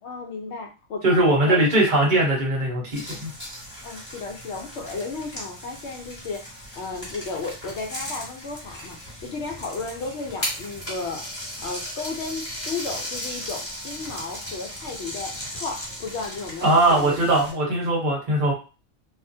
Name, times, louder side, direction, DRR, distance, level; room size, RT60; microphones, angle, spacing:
voice 1, 0.0-1.7 3.8-11.3 11.6-17.4, left 4 dB, 65° left, 3 dB, 0.8 m, -34 dB
voice 2, 1.0-3.3 16.6-18.5, right 1 dB, 45° right, -3 dB, 0.9 m, -20 dB
sound 1, 2.9-17.5, equal, 10° left, 1.2 m, -36 dB
2.4 x 2.1 x 2.6 m, 0.32 s
omnidirectional pair, 1.3 m